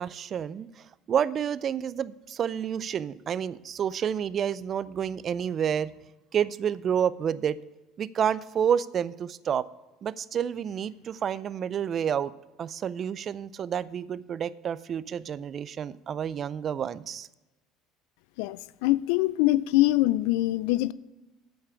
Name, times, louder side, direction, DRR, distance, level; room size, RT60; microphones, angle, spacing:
voice 1, 0.0-5.9 6.3-7.6 8.0-9.7 10.0-12.3 12.6-17.3, right 8 dB, 35° right, 0.4 m, -29 dB
voice 2, 18.4-20.9, left 17 dB, 80° left, 0.3 m, -24 dB
8.6 x 5.7 x 8.0 m
cardioid pair, 135°, 0 cm